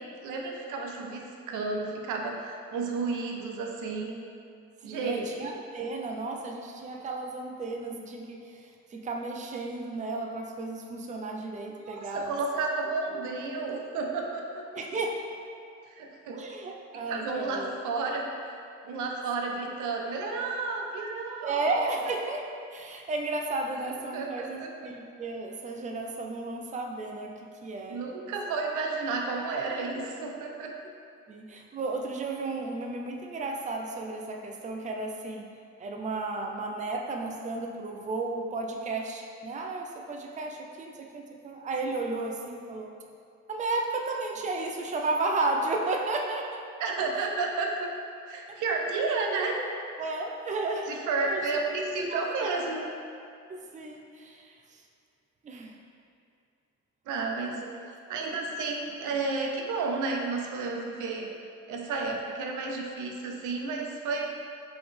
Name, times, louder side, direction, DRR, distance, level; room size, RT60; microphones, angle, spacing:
voice 1, 0.0-4.2 4.8-5.3 11.9-14.6 15.9-16.4 17.1-18.6 18.8-21.7 24.1-24.7 27.9-30.7 46.8-47.9 48.3-49.6 50.9-52.9 57.1-57.6 58.1-61.3 61.7-64.3, right 3 dB, 85° right, 1 dB, 0.6 m, -32 dB
voice 2, 4.9-12.4 13.1-13.3 14.7-15.2 16.3-17.8 21.4-22.4 22.7-27.3 27.6-28.0 31.3-35.5 35.8-42.9 43.5-46.6 48.5-48.6 50.0-50.9 51.2-51.6 52.0-52.7 53.5-54.8 55.4-55.7 57.4-57.8 58.1-58.2, right 3 dB, 25° right, 1 dB, 0.5 m, -33 dB
4.0 x 3.8 x 3.4 m, 2.4 s
cardioid pair, 90°, 30 cm